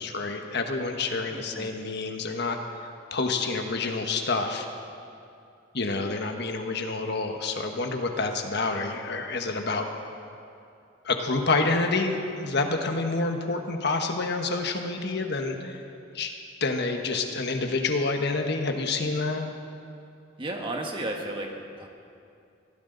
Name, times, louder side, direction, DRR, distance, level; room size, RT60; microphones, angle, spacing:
voice 1, 0.0-2.6 3.1-4.7 5.7-9.9 11.0-15.8 16.1-16.3 16.6-19.5, left 3 dB, 60° left, 4 dB, 1.3 m, -28 dB
voice 2, 1.3-1.8 20.4-21.9, right 1 dB, 25° right, 1 dB, 1.7 m, -34 dB
22.0 x 16.0 x 4.0 m, 2.5 s
head